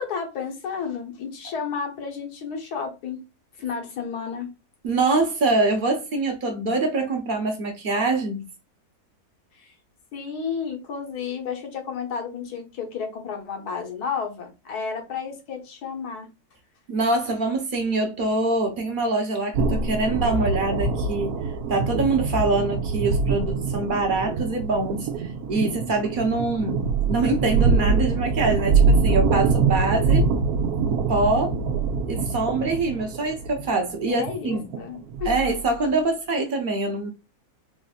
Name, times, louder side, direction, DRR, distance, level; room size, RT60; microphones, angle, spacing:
voice 1, 0.0-3.2 3.6-4.5 9.5-9.7 10.1-16.3 34.1-35.4, left 6 dB, 85° left, 1.5 m, -32 dB
voice 2, 4.8-8.5 16.9-21.4 21.7-30.3 30.8-31.6 32.1-34.7 35.2-37.1, right 3 dB, 40° right, 0.9 m, -24 dB
sound 1, 19.5-35.7, right 4 dB, 80° right, 1.1 m, -24 dB
4.1 x 2.6 x 2.4 m
omnidirectional pair, 1.6 m